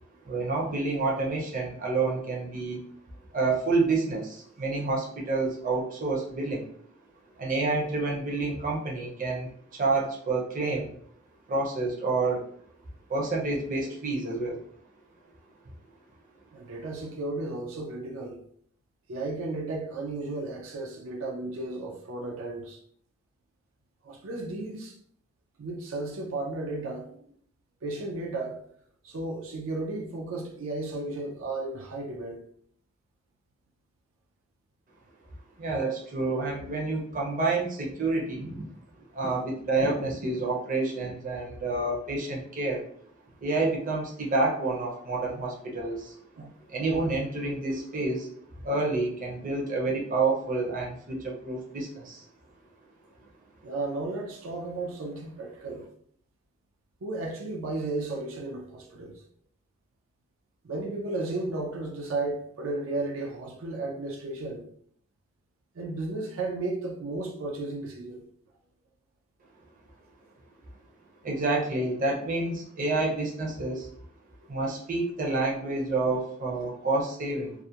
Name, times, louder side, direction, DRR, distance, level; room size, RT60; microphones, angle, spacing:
voice 1, 0.3-2.8 3.3-6.6 7.4-10.9 11.5-12.5 13.1-14.6 35.6-38.7 39.1-42.8 43.4-46.2 46.7-48.3 48.6-52.2 71.2-73.9 74.5-77.5, right 3 dB, 40° right, 0.5 m, -28 dB
voice 2, 16.5-18.4 19.1-22.8 24.0-25.0 25.6-27.3 27.8-28.6 29.0-32.4 46.4-46.5 53.6-55.9 57.0-59.2 60.6-64.6 65.8-68.2, right 2 dB, 90° right, 0.5 m, -34 dB
2.4 x 2.1 x 2.7 m
head